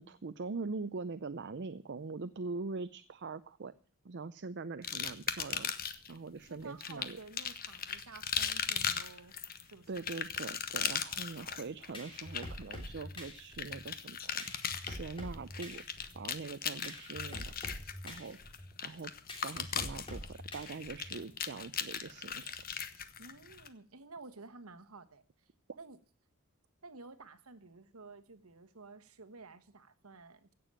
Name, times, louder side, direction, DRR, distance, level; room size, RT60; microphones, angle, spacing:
voice 1, 0.0-3.7 4.0-7.2 9.9-14.5 14.8-15.8 16.1-17.6 18.0-18.4 18.8-19.1 19.4-22.6, right 4 dB, 55° right, 12 dB, 0.6 m, -42 dB
sound 1, 4.8-6.1 6.8-23.7, left 8 dB, 45° left, 1.2 m, -38 dB
voice 2, 6.5-9.3 9.6-10.1 23.2-25.5 25.8-26.0 26.8-30.5, right 3 dB, 75° right, 9 dB, 1.3 m, -52 dB
sound 2, 11.6-21.3, left 1 dB, 25° left, 3.4 m, -46 dB
16.5 x 7.0 x 8.9 m, 0.42 s
head